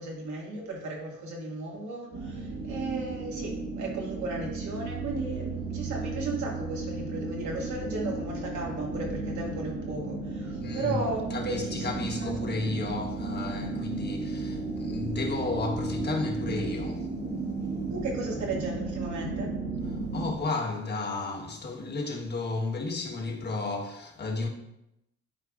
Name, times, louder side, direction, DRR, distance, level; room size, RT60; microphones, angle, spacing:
voice 1, 0.0-12.5 17.9-19.6, right 2 dB, 70° right, 2.1 m, -35 dB
sound 1, 2.1-20.4, right 3 dB, 45° right, 1.4 m, -34 dB
voice 2, 10.6-11.0 11.3-17.1 19.9-24.5, left 3 dB, 35° left, 1.4 m, -33 dB
11.5 x 4.6 x 2.5 m
cardioid pair, 90°, 30 cm